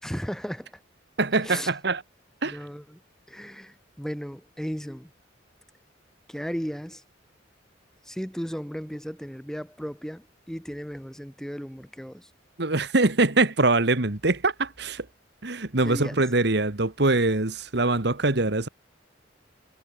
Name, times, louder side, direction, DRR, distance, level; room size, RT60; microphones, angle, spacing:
voice 1, 0.0-0.8 1.4-1.7 2.4-3.0 3.3-5.1 6.3-7.0 8.1-12.3 15.8-16.2, equal, 5° left, 5.5 m, -35 dB
voice 2, 1.2-2.0 2.4-2.6 12.6-15.1 15.4-18.7, right 2 dB, 60° right, 1.8 m, -23 dB
head